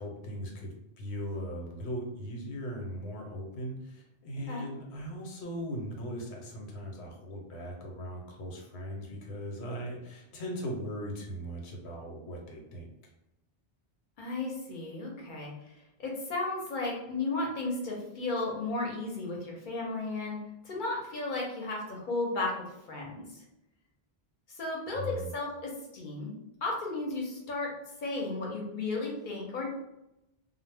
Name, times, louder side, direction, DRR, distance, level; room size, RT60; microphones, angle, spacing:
voice 1, 0.0-12.9 24.9-25.3, equal, 85° left, 0 dB, 0.9 m, -39 dB
voice 2, 14.2-15.7 16.0-20.4 20.6-22.5 22.9-23.4 24.5-26.3 26.6-27.7 28.0-29.7, left 2 dB, 55° left, -2 dB, 0.7 m, -34 dB
2.0 x 2.0 x 3.3 m, 0.87 s
omnidirectional pair, 1.1 m